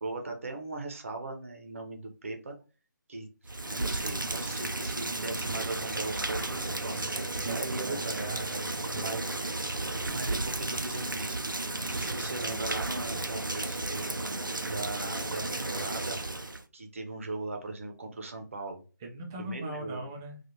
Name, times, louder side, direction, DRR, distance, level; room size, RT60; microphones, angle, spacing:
voice 1, 0.0-2.6 3.1-3.3 3.7-8.2 8.8-9.2 10.1-11.4 11.8-14.1 14.6-16.2 16.7-18.8 19.4-20.1, right 2 dB, 40° right, 3 dB, 0.8 m, -39 dB
Rain, 3.4-16.6, right 2 dB, 90° right, 0.5 m, -33 dB
voice 2, 6.9-9.2 19.0-20.4, right 2 dB, 10° right, 0 dB, 0.4 m, -40 dB
3.2 x 2.4 x 2.8 m, 0.34 s
figure-of-eight pair, 150°, 10 cm